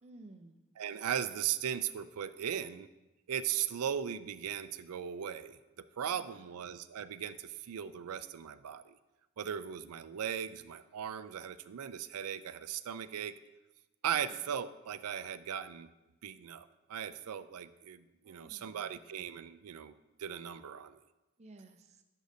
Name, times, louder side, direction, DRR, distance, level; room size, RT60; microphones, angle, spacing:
voice 1, 0.0-0.7 6.0-6.5 14.0-14.4 18.2-18.9 21.4-22.0, right 2 dB, 30° right, 6 dB, 0.5 m, -56 dB
voice 2, 0.8-2.9 3.3-5.6 6.0-8.9 9.4-13.3 14.0-15.9 16.2-19.9 20.2-21.0, right 9 dB, 85° right, 14 dB, 0.4 m, -38 dB
11.5 x 6.3 x 2.7 m, 1.0 s
head